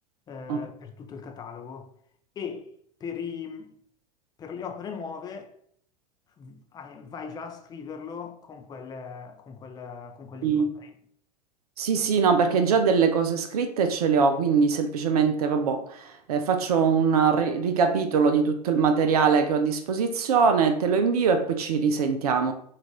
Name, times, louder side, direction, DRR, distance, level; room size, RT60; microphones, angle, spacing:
voice 1, 0.3-1.9 2.4-2.7 3.0-3.8 4.4-5.5 6.4-10.9, left 6 dB, 20° left, 0.5 m, -39 dB
voice 2, 11.8-22.5, right 5 dB, 65° right, 0.5 m, -22 dB
5.6 x 2.5 x 3.0 m
figure-of-eight pair, 80°, 21 cm